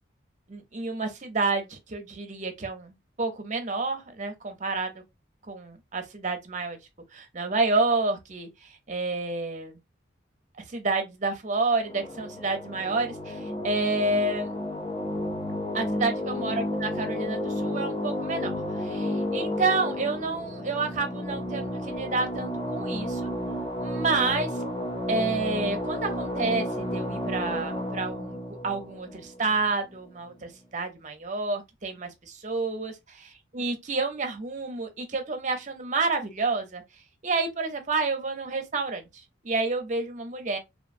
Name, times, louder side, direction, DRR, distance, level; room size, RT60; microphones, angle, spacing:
voice 1, 0.5-4.9 5.5-6.8 7.1-9.8 10.7-14.5 15.7-23.3 23.8-24.5 25.1-28.4 28.6-32.9 33.5-36.8 37.2-39.0 39.4-40.6, right 3 dB, 40° right, 0.6 m, -29 dB
sound 1, 11.8-30.0, left 1 dB, 25° left, 0.5 m, -32 dB
3.0 x 2.1 x 2.5 m
head